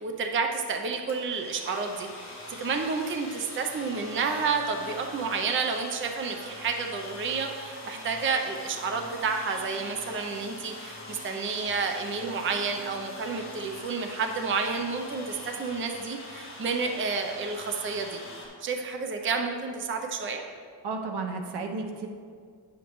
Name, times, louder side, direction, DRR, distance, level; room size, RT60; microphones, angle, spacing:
voice 1, 0.0-18.2 18.6-20.4, right 4 dB, 30° right, 4 dB, 0.5 m, -30 dB
sound 1, 1.1-18.5, left 1 dB, 30° left, 2.0 m, -43 dB
voice 2, 20.8-22.1, right 4 dB, 75° right, 4 dB, 0.9 m, -33 dB
9.2 x 7.2 x 3.0 m, 2.1 s
wide cardioid pair, 165°, 41 cm